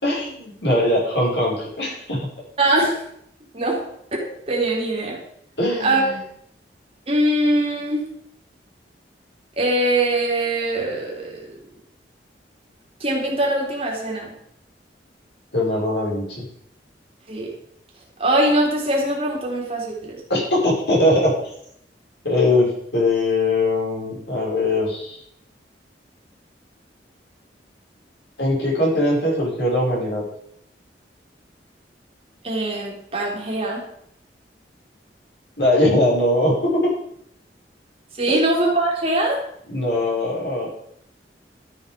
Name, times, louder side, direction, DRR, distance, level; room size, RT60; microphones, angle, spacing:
voice 1, 0.0-2.3 5.6-6.2 15.5-16.4 20.3-21.3 22.2-25.2 28.4-30.3 35.6-36.9 38.3-38.5 39.7-40.7, left 1 dB, 75° left, -4 dB, 5.5 m, -21 dB
voice 2, 2.6-3.0 3.5-3.8 4.2-5.2 5.8-6.0 7.1-8.0 9.6-11.5 13.0-14.3 17.3-17.5 18.2-20.2 32.4-33.9 38.1-39.4, right 1 dB, 35° right, -3 dB, 3.3 m, -22 dB
13.0 x 7.7 x 5.3 m, 0.70 s
head